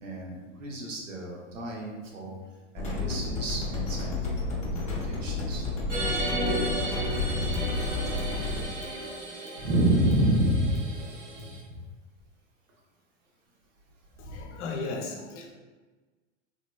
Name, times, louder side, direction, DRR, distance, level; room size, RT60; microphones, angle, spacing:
voice 1, 0.0-2.4 2.7-5.7 7.0-7.7 9.6-10.9 11.4-11.8 14.2-14.4, right 1 dB, 90° right, -2 dB, 0.9 m, -29 dB
sound 1, 2.8-8.6, left 3 dB, 20° left, 0.6 m, -31 dB
sound 2, 5.9-11.6, right 2 dB, 65° right, 0.9 m, -34 dB
voice 2, 14.2-15.5, left 3 dB, 65° left, 1 dB, 0.7 m, -36 dB
3.1 x 2.9 x 2.2 m, 1.3 s
hypercardioid pair, 115°, 37 cm